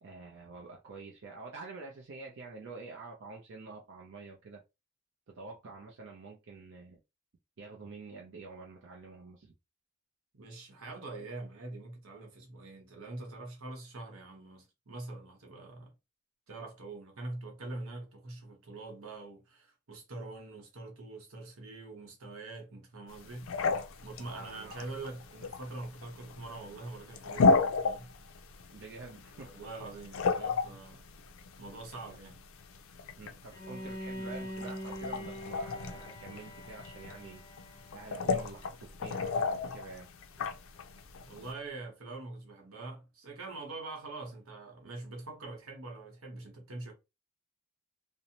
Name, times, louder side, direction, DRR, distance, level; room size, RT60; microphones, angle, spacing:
voice 1, 0.0-4.6 5.3-7.0 7.6-9.5 24.2-25.0 28.7-29.5 33.2-37.4 37.9-40.1, right 3 dB, 60° right, 0.5 m, -47 dB
voice 2, 10.4-15.9 16.5-23.5 24.0-28.1 29.4-31.0 31.6-32.4 41.3-46.9, right 2 dB, 85° right, 1.0 m, -44 dB
sound 1, 23.1-41.5, left 4 dB, 70° left, 0.4 m, -34 dB
Bowed string instrument, 33.5-38.5, equal, 20° left, 0.6 m, -44 dB
2.7 x 2.0 x 2.8 m
head